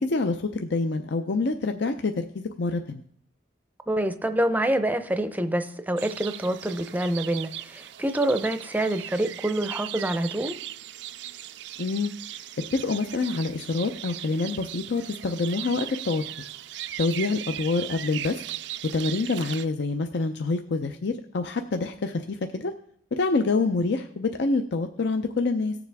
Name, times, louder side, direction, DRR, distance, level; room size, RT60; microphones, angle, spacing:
voice 1, 0.0-3.0 11.8-12.1 12.7-16.5 17.0-18.4 18.9-22.7 23.1-25.8, left 3 dB, 60° left, 6 dB, 0.5 m, -26 dB
voice 2, 3.9-10.5, right 1 dB, 10° right, 9 dB, 0.6 m, -26 dB
sound 1, 6.0-19.7, right 13 dB, 65° right, 0.4 m, -38 dB
18.0 x 7.1 x 3.4 m, 0.63 s
head